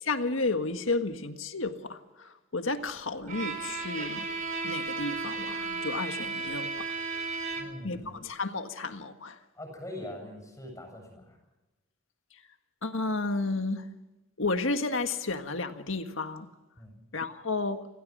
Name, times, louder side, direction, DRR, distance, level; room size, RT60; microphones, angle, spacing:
voice 1, 0.0-4.3 4.6-6.9 7.8-9.4 12.8-13.9 14.4-16.5 17.1-17.9, left 3 dB, 75° left, 1.7 m, -32 dB
Bowed string instrument, 3.3-8.0, right 4 dB, 40° right, 4.6 m, -34 dB
voice 2, 7.5-8.2 9.6-11.4 16.8-17.0, left 1 dB, 15° left, 7.6 m, -43 dB
29.5 x 16.0 x 6.3 m
head